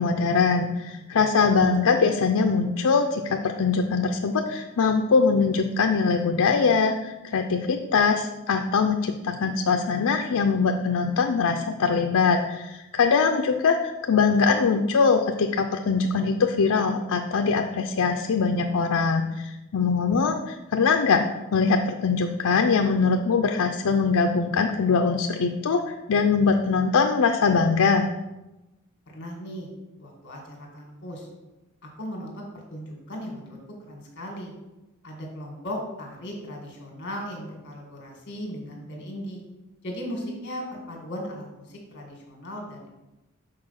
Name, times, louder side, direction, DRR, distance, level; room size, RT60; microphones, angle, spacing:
voice 1, 0.0-21.3 21.5-28.1, left 5 dB, 80° left, 4 dB, 0.5 m, -22 dB
voice 2, 29.1-29.7 30.0-31.3 31.8-33.6 33.9-34.5 35.0-39.4 39.8-42.9, equal, 50° left, 0 dB, 2.0 m, -37 dB
6.7 x 4.5 x 5.7 m, 1.0 s
head